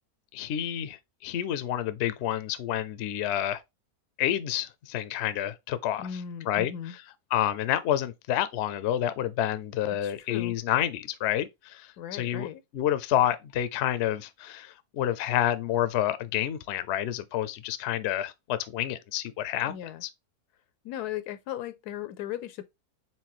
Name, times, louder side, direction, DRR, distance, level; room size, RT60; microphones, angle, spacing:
voice 1, 0.3-3.6 4.2-6.1 6.5-6.7 7.3-12.5 12.7-19.7 20.0-20.1, left 11 dB, 65° left, 0.7 m, -29 dB
voice 2, 6.0-6.9 10.0-10.6 12.0-12.6 19.7-20.0 20.8-22.6, left 10 dB, 85° left, 1.2 m, -37 dB
4.4 x 3.7 x 3.0 m
omnidirectional pair, 1.6 m